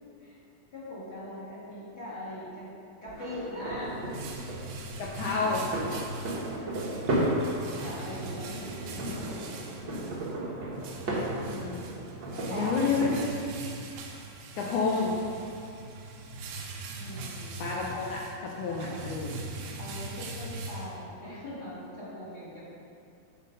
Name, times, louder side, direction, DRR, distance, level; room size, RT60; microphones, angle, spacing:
voice 1, 0.7-2.7 3.0-4.0 7.8-10.5 12.3-12.8 16.9-17.6 18.7-19.2 19.8-22.6, equal, 35° left, -10 dB, 2.0 m, -41 dB
sound 1, 3.1-13.2, right 1 dB, 55° right, 1.2 m, -34 dB
sound 2, 3.6-21.4, right 2 dB, 85° right, 2.4 m, -41 dB
voice 2, 5.0-5.6 11.4-11.8 12.5-13.3 14.6-15.2 17.6-19.4, left 4 dB, 75° left, -3 dB, 1.9 m, -30 dB
8.3 x 4.5 x 5.2 m, 2.5 s
omnidirectional pair, 4.1 m